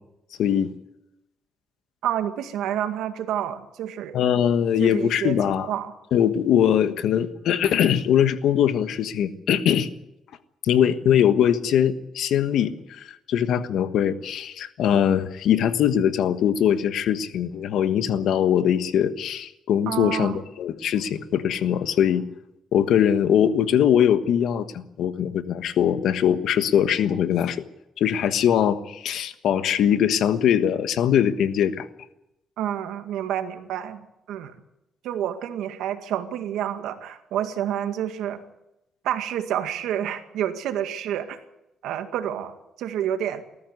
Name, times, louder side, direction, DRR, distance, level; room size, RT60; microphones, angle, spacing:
voice 1, 0.4-0.7 4.1-5.7 6.1-9.9 10.6-22.2 22.7-27.6 28.0-31.9, left 9 dB, 75° left, 10 dB, 1.4 m, -21 dB
voice 2, 2.0-4.2 4.8-5.4 5.7-5.9 19.9-20.4 32.6-34.5 35.0-38.4 39.0-41.4 41.8-43.4, right 10 dB, 85° right, 7 dB, 2.0 m, -29 dB
20.5 x 14.5 x 9.7 m, 0.89 s
cardioid pair, 90°, 0 cm